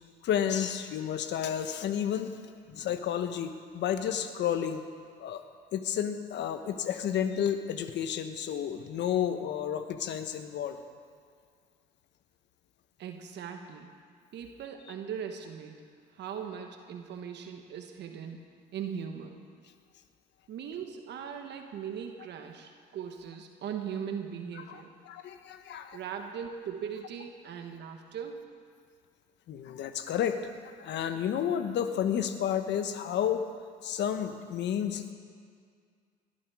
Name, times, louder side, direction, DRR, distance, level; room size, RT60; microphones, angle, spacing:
voice 1, 0.2-2.3 2.7-4.8 5.2-5.4 5.7-10.8 24.5-26.0 29.5-33.4 33.8-35.1, left 9 dB, 70° left, 8 dB, 1.2 m, -31 dB
voice 2, 13.0-13.9 14.3-15.9 16.1-18.4 18.7-19.4 20.5-24.9 25.9-28.4, right 7 dB, 70° right, 5 dB, 1.2 m, -39 dB
21.0 x 12.0 x 4.9 m, 2.1 s
supercardioid pair, 70°, 19 cm